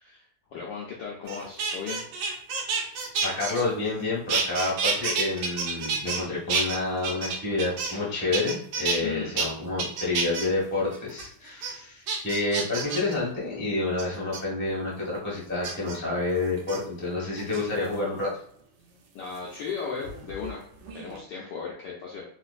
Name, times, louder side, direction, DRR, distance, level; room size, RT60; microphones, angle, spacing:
voice 1, 0.0-2.1 9.0-9.4 11.7-11.8 19.1-20.6 20.9-22.2, left 6 dB, 75° left, -3 dB, 1.0 m, -36 dB
sound 1, 1.3-4.0 4.3-6.2 6.5-8.0 8.3-9.0 9.4-9.5 9.8-10.5 10.9-11.2 11.6-11.7 12.1-13.1 14.0-14.4 15.6-16.0 16.6-16.8 17.4-17.9 19.4-20.6 20.8-21.2, right 4 dB, 80° right, 1.6 m, -29 dB
voice 2, 3.2-18.3, left 2 dB, 10° left, -5 dB, 0.6 m, -29 dB
3.9 x 2.5 x 2.4 m, 0.65 s
omnidirectional pair, 2.4 m